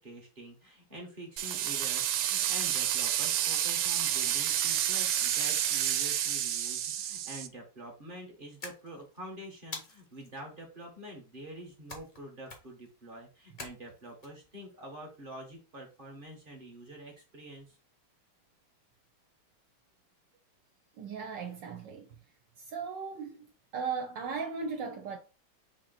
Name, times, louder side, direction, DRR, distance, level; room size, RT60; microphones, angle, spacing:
voice 1, 0.0-17.8, right 1 dB, 35° right, 0.9 m, -46 dB
sound 1, 1.4-7.5, right 11 dB, 90° right, 1.4 m, -29 dB
sound 2, 8.6-9.2 9.7-10.3 11.9-12.2 12.5-12.9 13.6-14.3, left 3 dB, 75° left, 0.3 m, -44 dB
voice 2, 21.0-22.1 22.7-23.4 23.7-25.2, right 5 dB, 70° right, 1.3 m, -36 dB
4.4 x 2.9 x 3.9 m
omnidirectional pair, 2.2 m